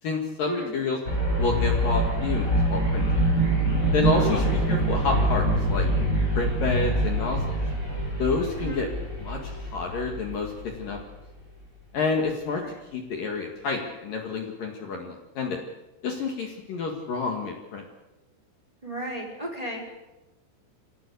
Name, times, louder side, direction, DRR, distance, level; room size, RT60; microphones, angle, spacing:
voice 1, 0.0-1.0 1.4-3.0 3.9-5.9 6.3-7.6 8.2-8.9 9.2-11.0 11.9-12.6 12.9-15.6 16.0-17.8, left 4 dB, 55° left, 2 dB, 3.3 m, -29 dB
sound 1, 1.1-11.0, right 1 dB, 15° left, 6.0 m, -25 dB
voice 2, 4.1-4.5 8.6-8.9 12.6-12.7 18.8-19.9, equal, 10° right, 0 dB, 4.6 m, -33 dB
28.0 x 17.5 x 8.4 m, 1.1 s
omnidirectional pair, 5.3 m